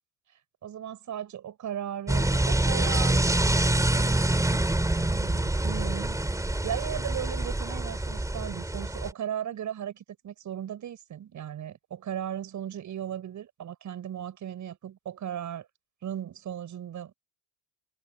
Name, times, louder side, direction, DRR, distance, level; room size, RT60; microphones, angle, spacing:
voice 1, 0.6-3.2 3.9-4.6 4.9-15.7 16.0-17.1, right 10 dB, 45° right, 7.5 m, -37 dB
sound 1, 2.1-9.1, right 2 dB, 10° right, 3.8 m, -26 dB
supercardioid pair, 90°, 40 cm